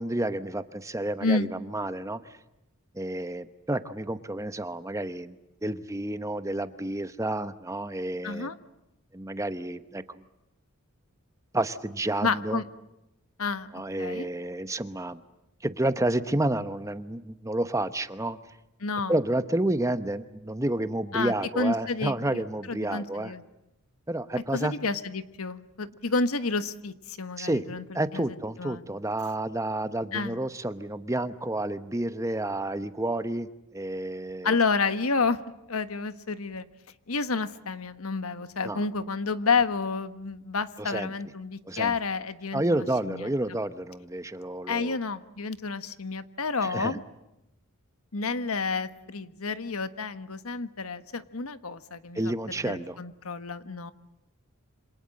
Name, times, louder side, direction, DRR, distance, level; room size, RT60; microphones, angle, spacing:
voice 1, 0.0-2.2 2.9-8.5 9.1-10.2 11.5-12.6 13.7-15.2 15.6-18.4 19.1-23.3 24.1-24.7 27.4-34.6 38.6-38.8 40.8-41.1 41.7-41.9 42.5-45.0 46.6-47.0 52.1-53.0, right 1 dB, 15° right, 12 dB, 1.0 m, -30 dB
voice 2, 8.2-8.5 12.2-12.6 13.4-13.7 14.0-14.3 18.8-19.1 21.1-22.4 22.7-23.4 24.5-27.8 28.1-28.2 28.6-28.8 30.1-30.4 34.4-35.4 35.7-36.7 37.1-43.3 44.7-47.0 48.1-52.3 52.6-53.9, left 4 dB, 80° left, 12 dB, 1.4 m, -30 dB
27.5 x 26.5 x 7.7 m, 0.89 s
head